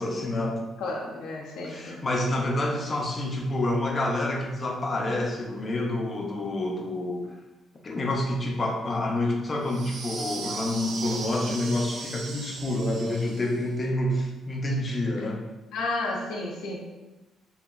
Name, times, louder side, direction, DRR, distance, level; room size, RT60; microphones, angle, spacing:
voice 1, 0.0-0.6 1.6-7.3 7.8-15.4, left 1 dB, 35° left, 0 dB, 0.5 m, -28 dB
voice 2, 0.8-2.0 15.2-15.3 15.7-16.8, left 2 dB, 85° left, -2 dB, 0.5 m, -32 dB
sound 1, 9.6-13.7, right 3 dB, 55° right, 0.3 m, -38 dB
2.9 x 2.5 x 2.3 m, 1.1 s
cardioid pair, 90°, 0 cm